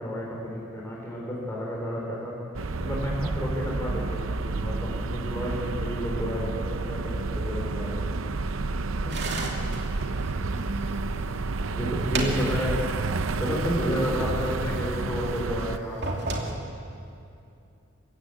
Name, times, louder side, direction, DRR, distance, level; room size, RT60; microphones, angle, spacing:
voice 1, 0.0-2.3 2.8-8.0 11.8-13.1 13.4-16.0, equal, 15° left, -4 dB, 3.9 m, -31 dB
sound 1, 2.5-15.8, right 3 dB, 75° right, 0.7 m, -30 dB
voice 2, 8.9-10.8 11.0-11.2, equal, 30° left, 0 dB, 4.3 m, -44 dB
sound 2, 9.1-11.2 11.6-13.0 13.3-13.4 14.0-15.2 15.8-16.5, right 2 dB, 55° right, 2.7 m, -34 dB
27.0 x 15.5 x 8.3 m, 2.6 s
head